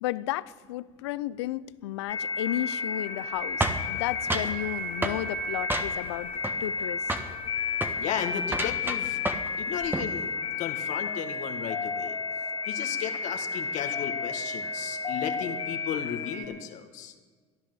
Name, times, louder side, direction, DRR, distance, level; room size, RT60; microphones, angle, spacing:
voice 1, 0.0-6.3 6.6-7.0, left 15 dB, 85° left, 19 dB, 0.5 m, -33 dB
sound 1, 2.1-16.5, left 4 dB, 40° left, 2.4 m, -32 dB
sound 2, 3.6-4.6 5.0-5.2 5.7-6.2 6.4-6.8 7.1-7.3 7.7-8.0 8.5-9.6 9.8-10.1, right 2 dB, 15° right, 1.5 m, -30 dB
voice 2, 8.0-9.2 9.6-10.3 10.6-12.2 12.7-17.1, left 9 dB, 65° left, 5 dB, 1.7 m, -35 dB
14.5 x 10.5 x 7.8 m, 1.5 s
hypercardioid pair, 75°, 14 cm